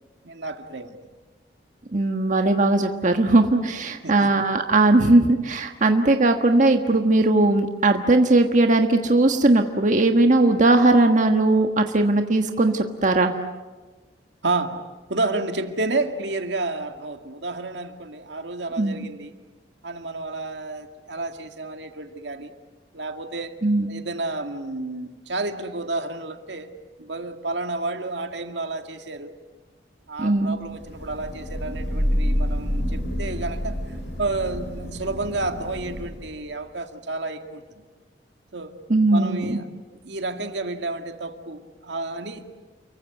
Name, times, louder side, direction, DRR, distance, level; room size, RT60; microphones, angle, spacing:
voice 1, 0.2-1.0 4.0-4.3 14.4-19.4 19.8-22.5 22.9-23.6 23.9-26.7 27.0-29.4 30.1-37.6 38.5-38.8 39.1-39.7 40.0-42.5, right 2 dB, 75° right, 6 dB, 2.1 m, -30 dB
voice 2, 1.9-13.3 18.8-19.0 23.6-23.9 30.2-30.6 38.9-39.6, right 2 dB, 45° right, 5 dB, 1.4 m, -19 dB
Thunder / Rain, 30.6-36.4, equal, 80° left, 8.0 m, -28 dB
29.5 x 23.5 x 8.4 m, 1.3 s
head